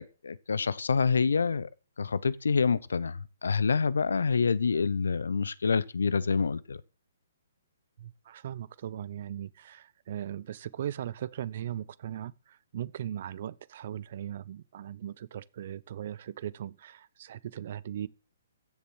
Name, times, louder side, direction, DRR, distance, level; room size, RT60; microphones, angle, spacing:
voice 1, 0.0-1.7 2.0-6.8, left 5 dB, 75° left, 0.8 m, -27 dB
voice 2, 8.0-18.1, right 10 dB, 50° right, 0.8 m, -38 dB
14.5 x 7.0 x 6.3 m
hypercardioid pair, 135°, 0 cm